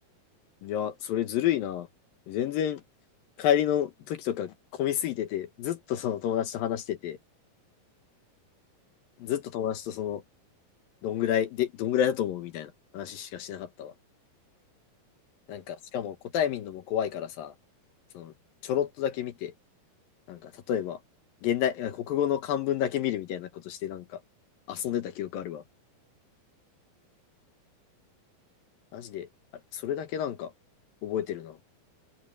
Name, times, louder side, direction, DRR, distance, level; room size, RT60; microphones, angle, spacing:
voice 1, 0.6-1.9 2.3-2.8 3.4-7.2 9.2-10.2 11.0-13.9 15.5-17.5 18.1-18.3 18.6-19.5 20.3-21.0 21.4-24.2 24.7-25.6 28.9-29.3 29.7-30.5 31.0-31.6, left 10 dB, 75° left, 2.9 m, -30 dB
omnidirectional pair, 4.3 m